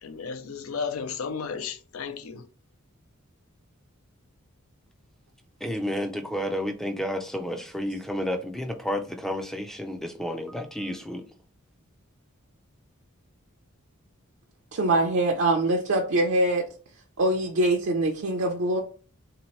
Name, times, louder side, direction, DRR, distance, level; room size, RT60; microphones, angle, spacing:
voice 1, 0.0-2.5, left 5 dB, 80° left, 0.5 m, -34 dB
voice 2, 5.6-11.2, equal, ahead, 0.4 m, -31 dB
voice 3, 14.7-16.7 17.2-18.8, right 2 dB, 65° right, 0.5 m, -23 dB
3.4 x 2.8 x 3.0 m
head